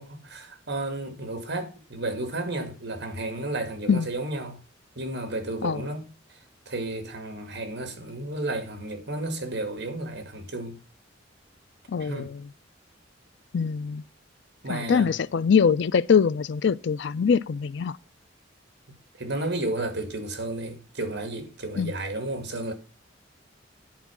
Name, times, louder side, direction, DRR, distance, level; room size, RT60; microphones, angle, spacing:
voice 1, 0.0-4.6 5.0-6.4 6.7-10.8 12.0-12.3 14.6-15.1 19.2-22.7, right 2 dB, 60° right, 2.2 m, -32 dB
voice 2, 11.9-12.4 13.5-14.0 14.7-18.0 21.8-21.9, left 6 dB, 65° left, 0.4 m, -23 dB
10.5 x 4.7 x 7.2 m
head